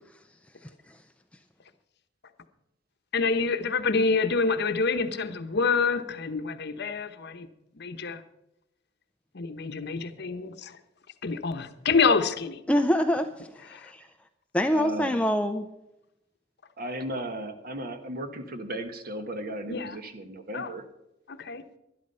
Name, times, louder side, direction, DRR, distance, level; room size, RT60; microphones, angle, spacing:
voice 1, 3.1-7.5 7.7-8.2 9.3-10.8 11.2-12.6 13.7-13.9 19.7-20.0 20.5-20.7 21.3-21.6, left 4 dB, 60° left, 9 dB, 0.9 m, -27 dB
voice 2, 12.7-14.0 14.5-15.7, equal, 5° left, 6 dB, 0.5 m, -25 dB
voice 3, 14.7-15.2 16.8-20.8, right 1 dB, 50° right, 8 dB, 1.3 m, -36 dB
12.0 x 11.5 x 5.5 m, 0.88 s
head